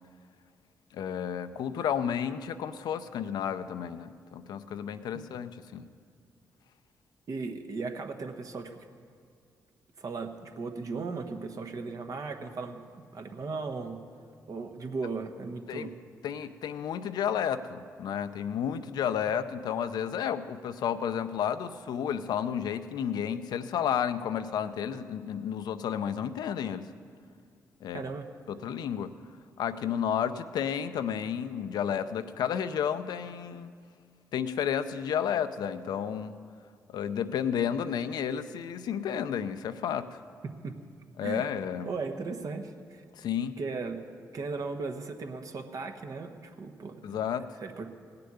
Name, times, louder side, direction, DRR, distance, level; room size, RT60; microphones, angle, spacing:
voice 1, 0.9-5.9 15.7-15.9 16.2-26.9 27.8-28.0 28.5-29.1 29.6-33.7 34.3-36.3 36.9-40.2 41.2-41.9 43.2-43.6 47.0-47.5, left 8 dB, 75° left, 10 dB, 0.6 m, -32 dB
voice 2, 7.3-8.8 10.0-12.8 13.1-14.0 14.5-15.9 27.9-28.3 40.6-40.7 41.2-41.5 41.8-43.0 43.6-44.0 44.3-47.0 47.6-47.9, right 4 dB, 55° right, 5 dB, 1.2 m, -36 dB
17.0 x 6.8 x 9.4 m, 2.2 s
cardioid pair, 65°, 7 cm